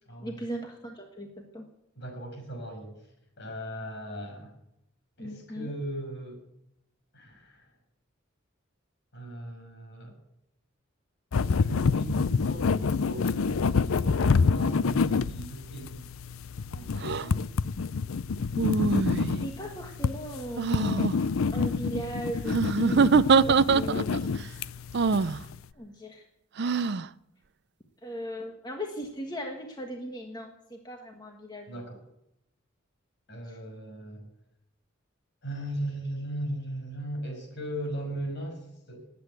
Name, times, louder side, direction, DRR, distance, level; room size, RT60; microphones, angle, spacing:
voice 1, 0.2-1.3 1.5-1.6 5.2-5.7 17.1-17.4 19.4-21.0 21.5-24.6 25.7-26.2 26.6-26.8 28.0-31.7 33.5-33.6, equal, 20° left, 2 dB, 1.5 m, -38 dB
voice 2, 2.0-2.9 3.4-4.5 5.2-6.4 7.1-7.7 9.1-10.1 11.4-16.0 16.6-17.5 31.7-32.0 33.3-34.2 35.4-39.1, right 1 dB, 60° left, 3 dB, 6.2 m, -38 dB
sound 1, 11.3-25.6, left 5 dB, 85° left, 0.5 m, -28 dB
sound 2, 17.0-17.3 18.6-19.4 20.6-21.1 22.5-24.2 24.9-25.4 26.6-27.1, right 5 dB, 55° right, 0.5 m, -24 dB
19.5 x 8.5 x 8.2 m, 0.84 s
head